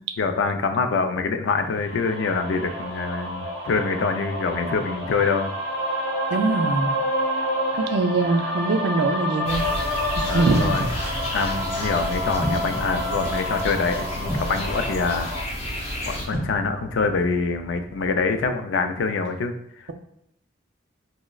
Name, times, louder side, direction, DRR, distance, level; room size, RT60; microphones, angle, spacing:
voice 1, 0.2-5.5 10.3-10.9 11.3-15.3 16.1-19.9, left 4 dB, 85° left, 7 dB, 0.4 m, -25 dB
sound 1, 1.9-15.4, equal, 35° right, 1.1 m, -29 dB
voice 2, 6.3-6.9 7.8-9.7 10.2-10.9, right 3 dB, 65° right, 7 dB, 0.4 m, -22 dB
sound 2, 9.5-16.3, equal, 35° left, 0.8 m, -31 dB
sound 3, 12.4-18.5, left 1 dB, 15° right, 0.6 m, -36 dB
4.8 x 2.0 x 2.3 m, 0.80 s
head